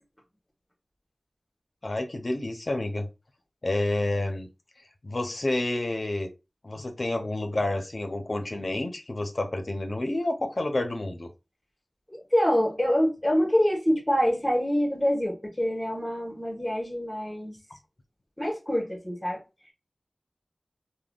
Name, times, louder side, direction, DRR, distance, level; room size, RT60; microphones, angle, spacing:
voice 1, 1.8-3.1 3.6-4.5 5.0-6.3 6.6-11.3, left 2 dB, 60° left, 0.6 m, -29 dB
voice 2, 12.1-17.6 18.4-19.4, equal, 20° left, 1.3 m, -25 dB
3.4 x 2.2 x 2.4 m
wide cardioid pair, 50°, 0 cm